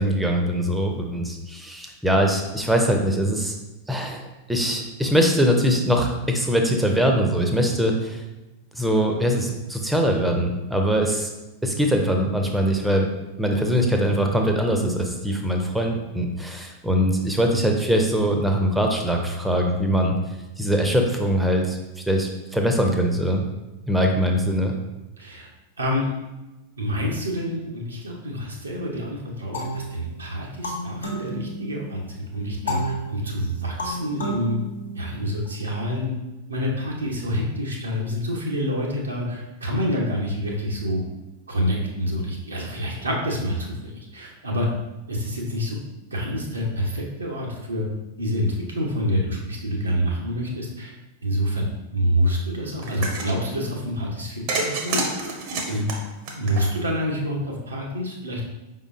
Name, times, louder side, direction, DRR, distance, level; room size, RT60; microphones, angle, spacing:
voice 1, 0.0-3.6 3.9-8.2 8.7-11.3 11.6-13.1 13.4-20.2 20.6-21.8 22.1-23.5 23.9-24.7 55.7-55.8, equal, 5° right, 2 dB, 0.6 m, -22 dB
voice 2, 25.2-25.5 25.8-26.1 26.8-34.6 34.9-36.1 36.5-41.0 41.5-44.7 45.1-45.8 46.1-47.9 48.2-50.9 51.2-51.7 51.9-55.4 55.7-55.8 56.3-58.4, equal, 80° right, -2 dB, 0.8 m, -27 dB
sound 1, 29.5-32.0 32.7-35.5, equal, 75° left, 1.0 m, -32 dB
sound 2, 52.8-53.3 54.5-57.0, right 3 dB, 45° right, 0.7 m, -28 dB
5.1 x 3.7 x 2.5 m, 1.0 s
figure-of-eight pair, 90°, 0 cm